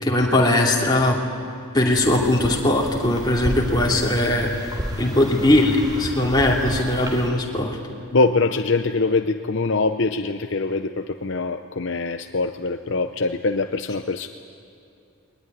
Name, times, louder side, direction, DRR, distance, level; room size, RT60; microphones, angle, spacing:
voice 1, 0.0-1.2 1.7-7.8, left 1 dB, 20° left, -2 dB, 2.9 m, -20 dB
sound 1, 1.9-7.3, equal, 20° right, 2.9 m, -32 dB
voice 2, 8.1-14.3, left 3 dB, 55° left, 7 dB, 0.6 m, -23 dB
21.5 x 20.0 x 9.8 m, 2.6 s
head